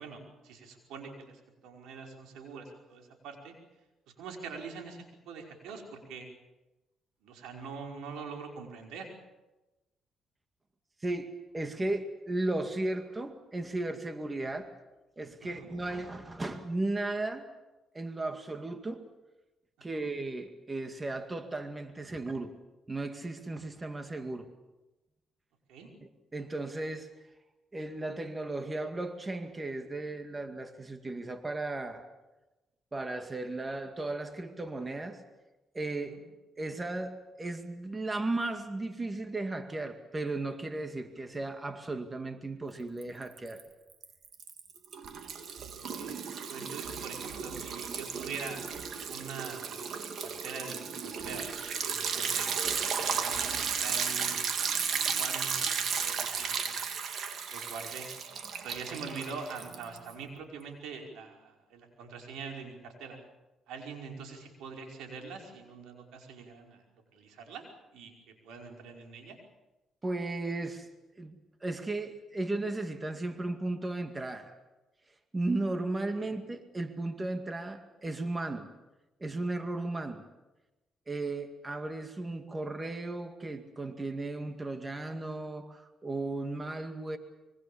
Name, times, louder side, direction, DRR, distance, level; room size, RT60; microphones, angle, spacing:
voice 1, 0.0-3.5 4.2-6.3 7.2-9.1 15.4-15.7 19.9-20.1 25.7-25.9 36.1-36.2 45.6-46.2 46.5-48.6 49.1-51.5 51.8-52.5 53.0-56.8 57.5-58.1 58.6-63.2 63.7-66.8 67.1-67.6 67.9-69.4 76.2-76.3, right 5 dB, 90° right, 2 dB, 5.3 m, -44 dB
voice 2, 11.0-14.7 15.2-17.5 17.9-19.1 19.8-22.5 22.9-24.5 26.0-27.1 27.7-32.1 32.9-35.2 35.7-36.2 36.6-43.6 70.0-70.9 71.2-74.6 75.3-78.7 79.2-80.2 81.1-87.2, right 2 dB, 20° right, 7 dB, 2.2 m, -35 dB
Liquid, 43.0-43.6 43.9-60.1, right 6 dB, 65° right, 3.0 m, -34 dB
25.5 x 23.5 x 7.2 m, 1.1 s
cardioid pair, 90°, 0 cm